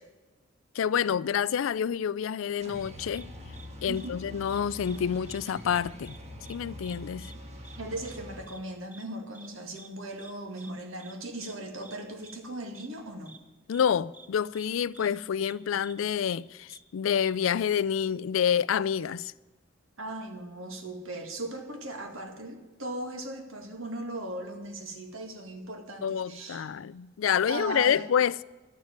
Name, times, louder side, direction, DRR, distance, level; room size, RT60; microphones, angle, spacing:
voice 1, 0.7-3.3 3.8-6.2 6.5-7.3 13.7-19.3 26.0-28.4, left 8 dB, 80° left, 0.4 m, -28 dB
sound 1, 2.6-8.4, equal, 30° right, 1.6 m, -44 dB
sound 2, 3.1-3.2 3.5-3.7 3.9-4.1 4.4-5.0 5.2-5.4 5.6-6.2 6.4-6.6 6.8-7.0 7.2-7.3 7.6-7.8 8.0-8.2 8.5-8.6 8.9-9.0 9.3-9.5 9.8-9.9 10.2-10.3 10.6-10.7 11.0-11.1 11.4-11.5 11.8-12.0 12.2-12.4 12.7-12.9 13.3-13.4 13.7-13.8 14.1-14.3 14.5-14.7 14.9-15.1 15.4-15.5 15.8-15.9 16.2-16.4 16.7-16.8 17.2-17.3, right 3 dB, 10° right, 0.7 m, -50 dB
voice 2, 3.8-4.2 7.8-13.3 20.0-26.8 27.4-28.0, right 1 dB, 90° right, 2.2 m, -38 dB
11.5 x 7.3 x 8.9 m
head